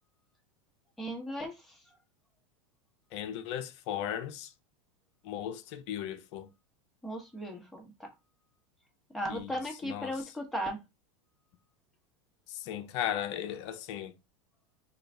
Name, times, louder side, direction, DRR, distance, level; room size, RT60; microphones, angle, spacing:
voice 1, 1.0-1.5 7.0-8.1 9.1-10.8, equal, ahead, 1.1 m, -36 dB
voice 2, 3.1-4.5 5.2-6.5 9.3-10.2 12.5-14.1, left 10 dB, 60° left, 0.6 m, -36 dB
3.8 x 2.4 x 3.3 m
hypercardioid pair, 110°, 16 cm